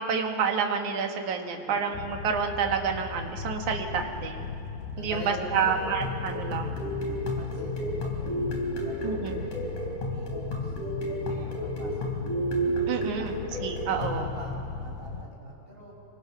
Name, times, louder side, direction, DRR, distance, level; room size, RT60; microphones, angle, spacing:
voice 1, 0.0-4.5 5.0-6.8 9.0-9.5 12.9-13.3 13.6-14.3, right 6 dB, 55° right, 3 dB, 2.9 m, -29 dB
voice 2, 1.5-1.8 5.0-5.8 7.4-9.6 10.0-12.1 13.1-13.3 13.9-14.5 14.8-15.9, equal, 15° right, -2 dB, 6.1 m, -44 dB
sound 1, 1.9-15.2, left 5 dB, 70° left, 2.6 m, -38 dB
sound 2, 5.8-14.3, equal, 55° left, 4.8 m, -32 dB
29.5 x 25.0 x 6.2 m, 2.8 s
omnidirectional pair, 4.4 m